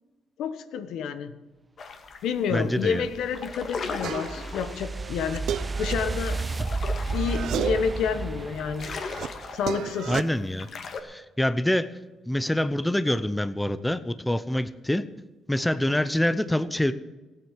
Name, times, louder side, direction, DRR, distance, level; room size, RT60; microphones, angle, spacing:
voice 1, 0.4-1.4 2.2-5.5 5.8-6.5 7.1-9.0 9.5-10.2, left 6 dB, 85° left, 11 dB, 1.1 m, -29 dB
sound 1, 1.8-2.3 2.6-2.9 3.2-11.0, left 4 dB, 50° left, 1.9 m, -38 dB
voice 2, 2.5-3.1 10.1-10.7 11.0-11.9 12.3-15.0 15.5-16.9, left 1 dB, 5° left, 13 dB, 0.8 m, -26 dB
sound 2, 2.7-9.8, right 3 dB, 25° right, 0.5 m, -33 dB
sound 3, 4.0-4.5 5.0-6.8 7.1-8.0 8.4-10.2, right 10 dB, 75° right, 0.6 m, -33 dB
15.0 x 9.2 x 7.4 m, 1.2 s
cardioid pair, 90°, 0 cm